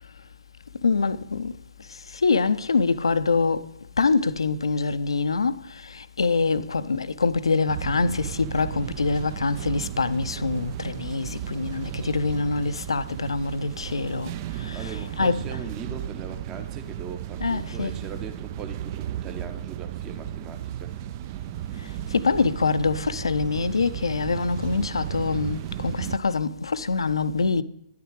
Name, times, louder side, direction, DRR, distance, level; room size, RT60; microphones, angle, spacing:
voice 1, 0.8-1.5 2.2-3.7 4.0-5.5 6.2-14.3 14.7-14.9 15.2-15.4 17.4-17.9 22.1-27.6, left 4 dB, 75° left, 0.5 m, -24 dB
sound 1, 7.7-26.2, right 12 dB, 35° right, 0.4 m, -35 dB
voice 2, 14.7-21.0, right 5 dB, 20° right, 0.8 m, -39 dB
10.5 x 9.4 x 3.1 m
figure-of-eight pair, 125°, 3 cm